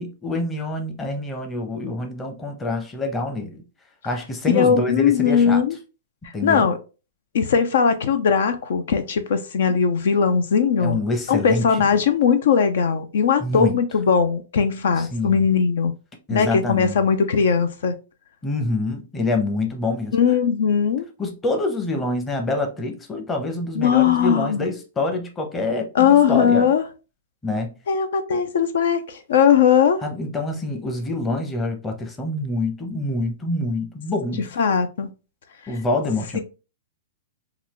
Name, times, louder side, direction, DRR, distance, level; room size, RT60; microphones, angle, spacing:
voice 1, 0.0-3.6 4.0-5.6 6.3-6.7 10.8-12.0 13.4-13.8 15.0-15.5 16.3-17.0 18.4-20.2 21.2-26.7 27.4-27.7 30.0-34.4 35.7-36.4, left 2 dB, 15° left, 0.8 m, -26 dB
voice 2, 4.5-5.8 6.2-6.8 7.3-11.0 11.3-15.9 16.3-17.9 20.1-21.0 23.8-24.7 25.9-26.8 27.9-30.0 34.6-35.1 36.3-36.4, left 7 dB, 70° left, 0.5 m, -19 dB
3.8 x 2.4 x 3.0 m
hypercardioid pair, 145°, 0 cm